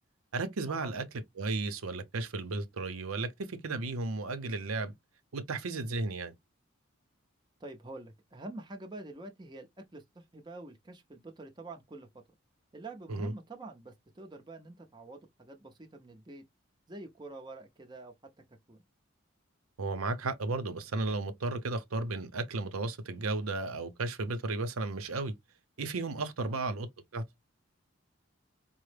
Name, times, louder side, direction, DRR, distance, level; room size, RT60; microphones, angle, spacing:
voice 1, 0.3-1.0 1.4-4.9 5.3-6.3 13.1-13.3 19.8-25.3 25.8-26.9 27.1-27.2, right 3 dB, 90° right, 0.7 m, -34 dB
voice 2, 7.6-9.7 9.9-12.1 12.7-16.4 16.9-18.1 18.7-18.8 26.4-26.6, right 2 dB, 20° right, 0.6 m, -46 dB
4.6 x 2.0 x 3.3 m
head